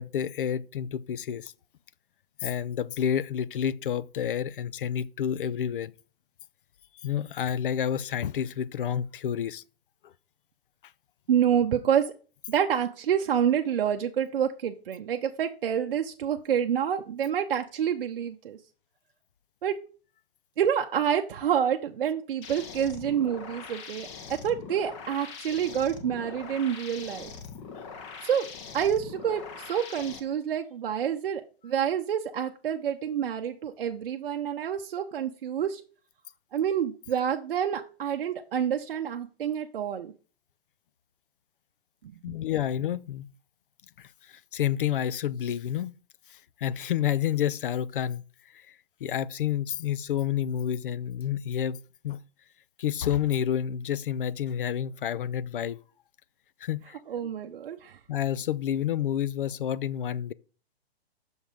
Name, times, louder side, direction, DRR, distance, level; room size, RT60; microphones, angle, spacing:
voice 1, 0.0-1.5 2.4-5.9 7.0-9.6 10.0-10.1 42.2-43.3 44.0-45.9 46.3-48.2 48.5-48.7 49.0-52.2 52.8-55.8 56.6-57.0 58.1-60.3, left 9 dB, 55° left, 0.5 m, -29 dB
voice 2, 11.3-12.1 12.5-18.6 19.6-19.8 20.6-24.1 24.4-27.3 28.2-28.5 28.7-35.8 36.5-40.1 42.3-42.4 57.1-58.0, right 9 dB, 60° right, 0.7 m, -28 dB
sound 1, 22.4-30.2, left 5 dB, 30° left, 1.1 m, -42 dB
6.3 x 5.4 x 5.0 m
hypercardioid pair, 150°, 32 cm